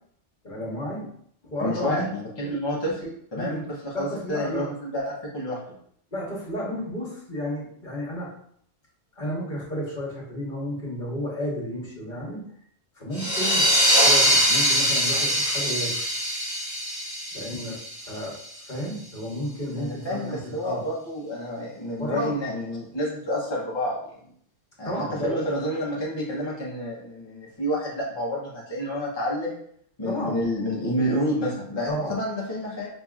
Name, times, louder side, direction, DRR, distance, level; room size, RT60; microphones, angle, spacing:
voice 1, 0.4-1.1 1.4-2.1 2.9-3.1 3.3-4.7 6.1-8.3 9.1-12.4 12.9-13.7 14.0-15.9 17.3-20.8 22.0-22.5 24.8-25.4 30.0-30.4 31.9-32.1, equal, 45° left, -5 dB, 1.3 m, -32 dB
voice 2, 1.6-2.9 3.3-3.6 3.8-5.6 19.7-24.2 24.8-24.9 25.2-29.6 30.0-32.9, equal, 25° left, -5 dB, 0.8 m, -29 dB
sound 1, 13.1-18.5, equal, 15° right, 1.2 m, -22 dB
5.2 x 2.8 x 2.4 m, 0.65 s
omnidirectional pair, 1.2 m